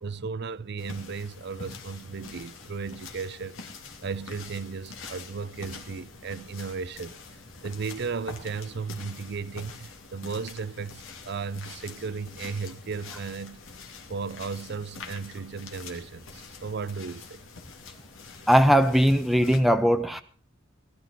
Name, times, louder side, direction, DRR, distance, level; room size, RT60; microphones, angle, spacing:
voice 1, 0.0-3.6 4.0-7.2 7.6-13.6 14.1-17.4, right 5 dB, 60° right, 0.6 m, -35 dB
sound 1, 0.8-19.6, left 4 dB, 85° left, 2.5 m, -45 dB
voice 2, 18.5-20.2, equal, ahead, 0.6 m, -20 dB
19.5 x 12.0 x 4.1 m
head